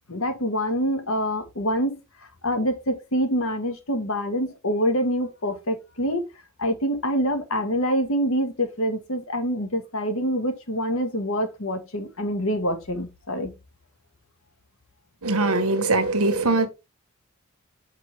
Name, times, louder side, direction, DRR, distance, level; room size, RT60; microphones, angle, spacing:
voice 1, 0.1-2.0 2.4-6.3 6.6-13.5, equal, 65° left, 1.6 m, -26 dB
voice 2, 15.2-16.7, right 2 dB, 80° right, 1.3 m, -21 dB
6.0 x 5.9 x 3.4 m
head